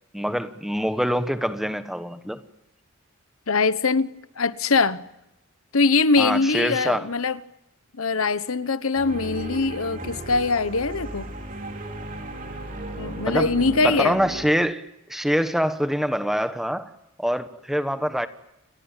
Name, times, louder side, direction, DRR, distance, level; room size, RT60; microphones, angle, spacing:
voice 1, 0.1-2.4 6.2-7.1 13.2-16.9 17.2-18.3, equal, ahead, 1.2 m, -25 dB
voice 2, 3.5-5.0 5.7-7.4 8.0-11.3 13.0-14.2, left 4 dB, 75° left, 1.1 m, -22 dB
sound 1, 8.9-14.5, right 1 dB, 40° right, 3.8 m, -35 dB
29.0 x 22.0 x 9.0 m
head